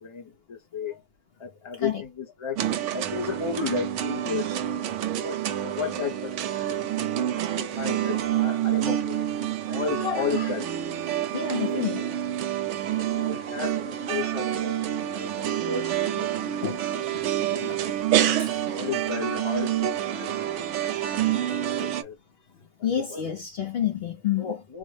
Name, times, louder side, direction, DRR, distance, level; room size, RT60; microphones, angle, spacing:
voice 1, 0.0-1.0 1.4-2.6 2.9-4.7 5.2-9.2 9.6-10.8 11.1-12.0 13.0-14.8 15.1-16.6 16.9-18.4 18.7-22.2 22.8-23.2 23.6-23.7 24.4-24.8, left 5 dB, 25° left, 0.8 m, -35 dB
sound 1, 2.6-22.0, right 11 dB, 75° right, 0.9 m, -28 dB
voice 2, 11.3-12.0 16.6-16.8 17.7-17.8 18.4-18.5 22.8-24.6, left 9 dB, 60° left, 0.8 m, -28 dB
4.1 x 2.0 x 3.1 m
omnidirectional pair, 1.3 m